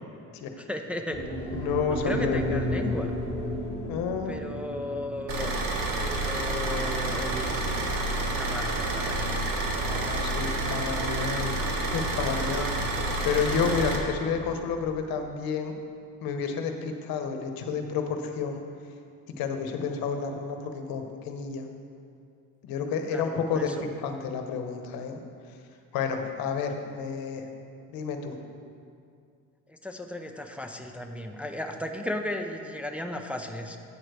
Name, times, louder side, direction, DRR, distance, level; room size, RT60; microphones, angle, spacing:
voice 1, 0.6-1.4 1.9-3.1 4.3-5.5 6.0-7.5 8.3-9.3 12.3-12.9 13.2-13.7 23.1-23.8 29.7-33.8, left 1 dB, 5° right, 3 dB, 0.4 m, -35 dB
sound 1, 1.1-9.3, left 1 dB, 15° left, 1.5 m, -34 dB
voice 2, 1.5-2.6 3.9-4.3 9.8-11.6 11.8-12.7 13.2-15.7 16.2-18.6 19.4-21.7 22.6-25.2 25.9-27.5 27.9-28.5, left 6 dB, 80° left, 5 dB, 0.9 m, -30 dB
Car / Idling, 5.3-14.0, right 2 dB, 70° right, 1.4 m, -29 dB
8.6 x 4.5 x 6.6 m, 2.4 s
cardioid pair, 100°, 35 cm